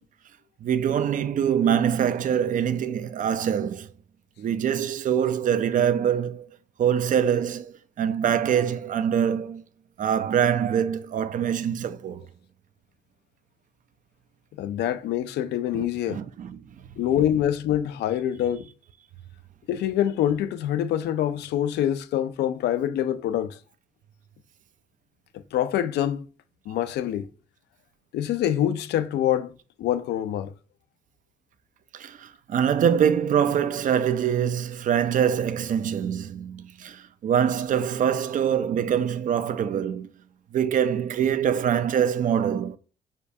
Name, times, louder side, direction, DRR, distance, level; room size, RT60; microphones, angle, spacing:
voice 1, 0.6-3.9 4.4-6.5 6.8-9.6 10.0-12.3 15.7-16.6 31.9-40.1 40.5-42.8, right 8 dB, 50° right, 0.4 m, -24 dB
voice 2, 14.6-16.2 17.0-18.7 19.7-23.6 25.5-26.3 26.7-27.3 28.1-29.5 29.8-30.5, left 11 dB, 80° left, 0.5 m, -25 dB
6.6 x 2.3 x 2.7 m
cardioid pair, 85°, 17 cm